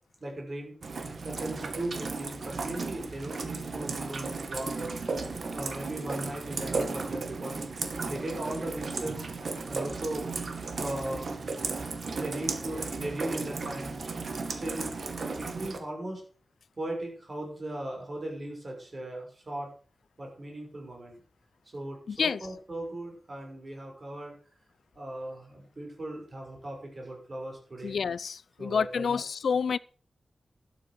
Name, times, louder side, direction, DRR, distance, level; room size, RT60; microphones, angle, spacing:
voice 1, 0.2-0.8 1.2-4.9 5.5-7.6 8.1-9.3 9.7-10.3 10.7-11.3 12.1-14.1 14.5-14.9 15.2-16.2 16.8-19.7 20.2-21.2 21.7-24.4 24.9-28.0 28.6-29.2, right 1 dB, 35° right, 6.3 m, -38 dB
Rain, 0.8-15.8, right 4 dB, 55° right, 2.0 m, -35 dB
voice 2, 22.1-22.4 27.8-29.8, left 6 dB, 80° left, 0.5 m, -28 dB
12.0 x 9.0 x 6.4 m
wide cardioid pair, 150°, 0 cm